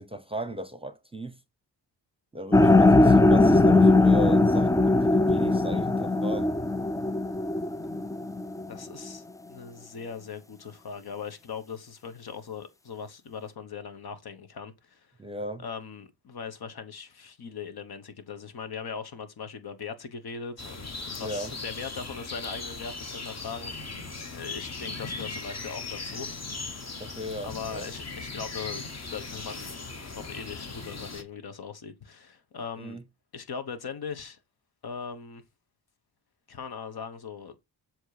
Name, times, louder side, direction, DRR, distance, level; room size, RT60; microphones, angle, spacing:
voice 1, 0.0-1.4 2.3-6.6 15.2-15.6 21.2-21.5 27.0-27.9 32.8-33.0, equal, 15° right, 0.8 m, -36 dB
sound 1, 2.5-8.7, left 2 dB, 10° left, 0.3 m, -20 dB
voice 2, 8.7-15.1 15.6-26.3 27.4-33.0 33.3-34.4 34.8-35.4 36.5-37.6, left 6 dB, 60° left, 1.3 m, -40 dB
sound 2, 20.6-31.2, left 3 dB, 40° left, 1.4 m, -38 dB
7.4 x 3.1 x 4.9 m
cardioid pair, 70°, 42 cm